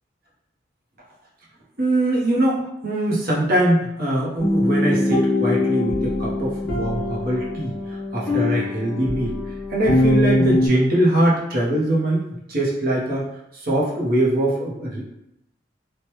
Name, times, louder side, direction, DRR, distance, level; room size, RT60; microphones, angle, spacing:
voice 1, 1.8-9.4 9.7-12.2 12.5-13.2 13.5-15.1, right 1 dB, 50° right, -4 dB, 0.7 m, -22 dB
sound 1, 4.4-10.7, left 2 dB, 65° left, 0.9 m, -22 dB
3.2 x 2.1 x 2.9 m, 0.84 s
head